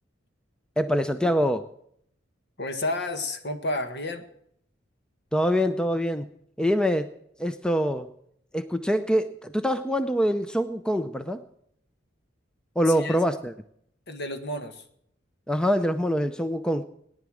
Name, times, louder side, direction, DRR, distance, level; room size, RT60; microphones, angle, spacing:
voice 1, 0.8-1.7 5.3-6.3 6.6-7.1 7.4-8.1 8.5-11.4 12.8-13.5 15.5-16.8, equal, 5° left, 10 dB, 0.5 m, -24 dB
voice 2, 2.6-4.2 12.9-13.2 14.1-14.8, left 1 dB, 55° left, 7 dB, 1.7 m, -31 dB
18.0 x 10.5 x 6.3 m, 0.70 s
head